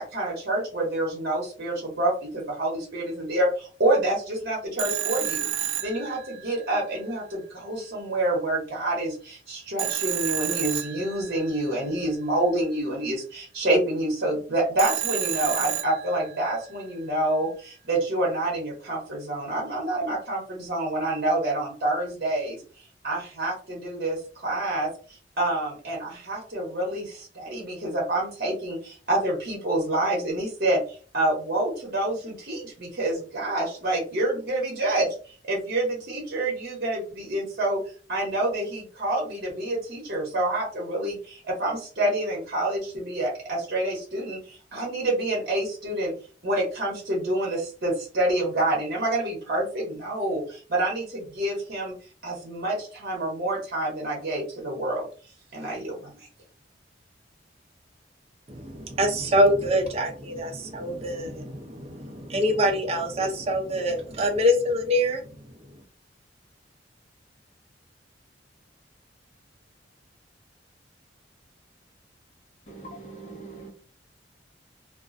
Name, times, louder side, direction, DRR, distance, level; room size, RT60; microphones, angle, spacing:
voice 1, 0.0-22.6 23.0-37.8 38.1-46.1 46.4-51.9 52.2-55.1 55.5-56.1, right 1 dB, 55° right, 0.9 m, -27 dB
Telephone, 4.8-6.7 9.8-11.6 14.8-16.5, right 11 dB, 85° right, 0.3 m, -30 dB
voice 2, 58.5-65.5, equal, 35° right, 0.5 m, -25 dB
voice 3, 72.7-73.7, right 3 dB, 40° left, 0.9 m, -42 dB
2.4 x 2.1 x 2.5 m
head